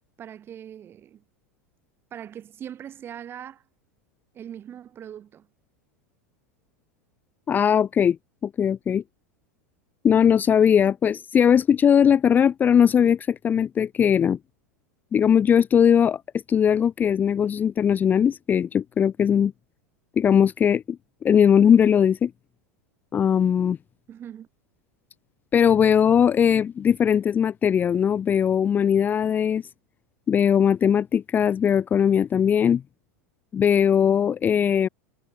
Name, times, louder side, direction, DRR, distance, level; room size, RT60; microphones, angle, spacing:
voice 1, 0.2-1.2 2.1-3.6 4.3-5.5 24.1-24.5, right 9 dB, 30° right, 2.9 m, -40 dB
voice 2, 7.5-8.2 8.4-9.0 10.0-14.4 15.1-16.2 16.5-19.5 20.2-21.0 21.2-22.3 23.1-23.8 25.5-29.6 30.3-32.8 33.5-34.9, left 8 dB, 20° left, 0.6 m, -19 dB
figure-of-eight pair, 85°, 8 cm